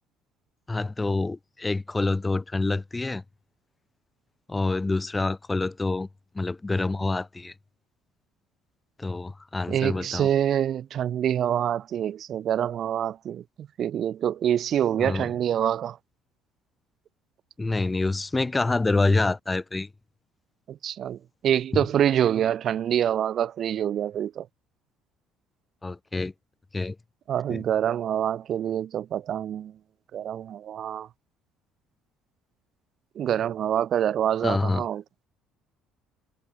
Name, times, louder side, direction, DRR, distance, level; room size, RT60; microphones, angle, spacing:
voice 1, 0.7-3.2 4.5-6.1 6.3-7.5 9.0-10.3 15.0-15.3 17.6-19.9 25.8-26.3 26.7-27.0 27.5-27.6 34.4-34.8, left 3 dB, 20° left, 0.7 m, -26 dB
voice 2, 9.7-16.0 20.7-21.2 21.4-24.5 27.3-29.7 30.1-31.1 33.2-35.0, right 10 dB, 50° right, 0.5 m, -26 dB
figure-of-eight pair, 55°, 0 cm